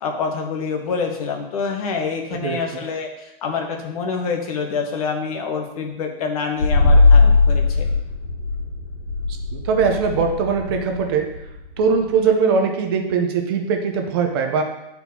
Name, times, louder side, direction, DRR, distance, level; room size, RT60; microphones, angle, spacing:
voice 1, 0.0-7.9, left 5 dB, 40° left, 3 dB, 1.0 m, -26 dB
sound 1, 6.6-12.2, left 3 dB, 65° left, 2.4 m, -18 dB
voice 2, 9.5-11.3 11.8-14.6, right 5 dB, 25° right, 4 dB, 0.6 m, -20 dB
9.0 x 4.5 x 2.7 m, 0.93 s
hypercardioid pair, 165°, 30 cm